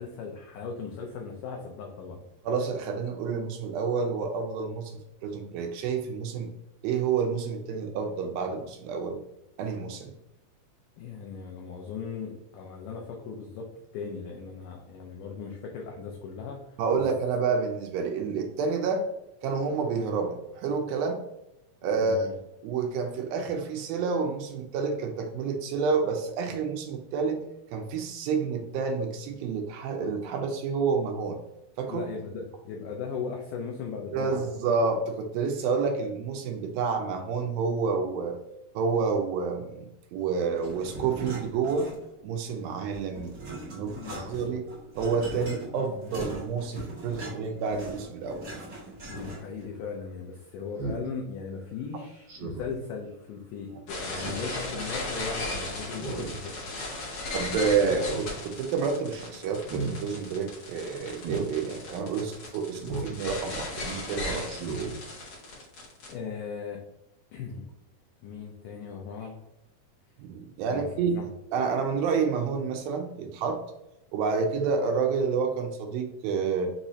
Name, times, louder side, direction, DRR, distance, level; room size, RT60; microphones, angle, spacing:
voice 1, 0.0-2.2 11.0-17.0 22.0-22.3 31.9-34.4 43.7-44.5 49.1-56.7 66.1-66.8 67.3-67.7 68.2-69.4 70.7-71.3, left 5 dB, 90° left, 1 dB, 1.8 m, -38 dB
voice 2, 2.5-6.5 6.8-9.2 9.6-10.1 16.8-19.0 19.4-21.2 21.8-22.2 22.6-27.4 27.7-31.4 31.8-32.0 34.1-38.4 38.8-39.7 40.1-41.9 42.2-43.3 43.7-43.9 44.3-44.7 45.0-48.4 57.3-64.5 70.2-71.2 71.5-73.6 74.1-76.7, right 5 dB, 80° right, 3 dB, 2.2 m, -29 dB
sound 1, 40.6-42.3 42.6-49.6, right 2 dB, 40° right, 1.4 m, -40 dB
Speech synthesizer, 49.1-49.3 50.8-51.1 52.3-52.8 54.1-54.6 55.9-56.4 56.8-56.9 57.7-58.2 58.6-58.9 59.6-60.0 61.2-61.5 62.8-63.2 63.6-63.8 64.4-64.9 65.4-65.5, right 4 dB, 65° right, 2.8 m, -35 dB
sound 2, 53.9-66.1, left 2 dB, 55° left, 2.2 m, -36 dB
6.0 x 3.0 x 2.7 m, 0.87 s
omnidirectional pair, 4.5 m